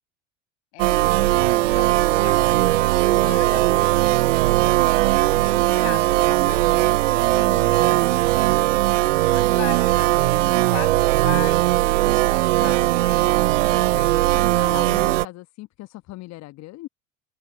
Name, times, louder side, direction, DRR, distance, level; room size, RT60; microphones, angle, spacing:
voice 1, 0.7-2.5 3.2-4.6 5.4-8.3 8.9-11.8 12.3-14.1, left 23 dB, 65° left, 7.9 m, -39 dB
sound 1, 0.8-15.3, right 16 dB, 75° right, 0.5 m, -19 dB
voice 2, 14.3-16.9, left 18 dB, 45° left, 1.3 m, -39 dB
figure-of-eight pair, 70°, 38 cm